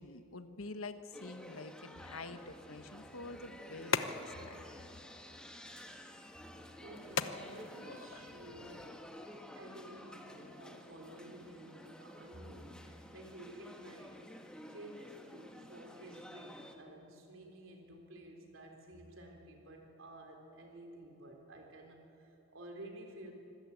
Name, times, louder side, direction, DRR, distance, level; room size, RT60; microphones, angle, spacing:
voice 1, 0.0-4.8, left 3 dB, 90° left, 9 dB, 1.3 m, -47 dB
sound 1, 1.1-16.8, left 1 dB, 5° left, 1.5 m, -52 dB
sound 2, 2.8-8.9, left 5 dB, 65° left, 0.9 m, -42 dB
voice 2, 6.8-9.0 9.5-14.2 14.7-23.3, right 1 dB, 65° right, 2 dB, 3.7 m, -52 dB
25.0 x 15.5 x 8.6 m, 2.8 s
head